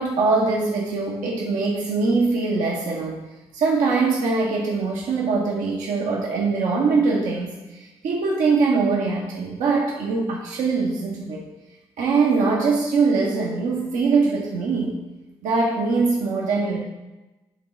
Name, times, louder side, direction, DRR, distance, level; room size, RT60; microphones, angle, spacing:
voice 1, 0.0-3.2 3.5-11.4 12.0-15.0 15.4-16.8, right 4 dB, 75° right, -3 dB, 0.9 m, -22 dB
9.4 x 3.7 x 4.2 m, 1.1 s
hypercardioid pair, 40°, 13 cm